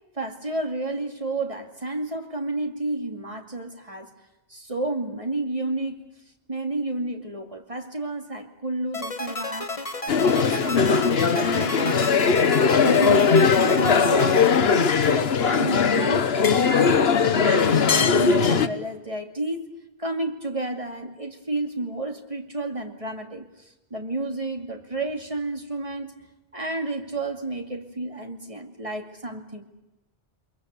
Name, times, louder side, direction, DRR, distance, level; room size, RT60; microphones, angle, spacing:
voice 1, 0.1-4.1 4.5-6.1 6.5-9.7 10.2-12.5 12.8-14.4 14.7-17.1 17.4-19.6 20.0-23.5 23.9-26.1 26.5-29.7, right 2 dB, 30° right, 4 dB, 2.5 m, -31 dB
sound 1, 8.9-15.2, left 2 dB, 30° left, 1.4 m, -33 dB
sound 2, 10.1-18.7, left 6 dB, 65° left, 1.3 m, -19 dB
24.5 x 22.5 x 8.3 m, 1.0 s
omnidirectional pair, 1.1 m